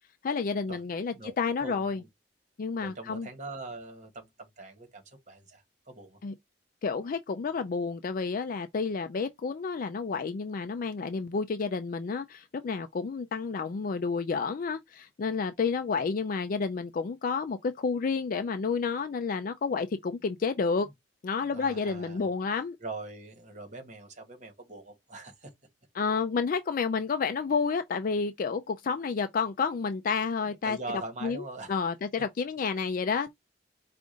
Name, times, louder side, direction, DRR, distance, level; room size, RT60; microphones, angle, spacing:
voice 1, 0.2-2.0 2.6-3.3 6.2-6.3 6.8-20.9 21.2-22.8 25.9-30.8 31.2-31.4 31.7-33.3, left 5 dB, 50° left, 0.4 m, -30 dB
voice 2, 1.6-2.1 2.8-6.2 20.8-20.9 21.5-22.3 22.8-25.5 30.5-31.7, right 2 dB, 40° right, 1.5 m, -42 dB
4.9 x 2.5 x 3.8 m
head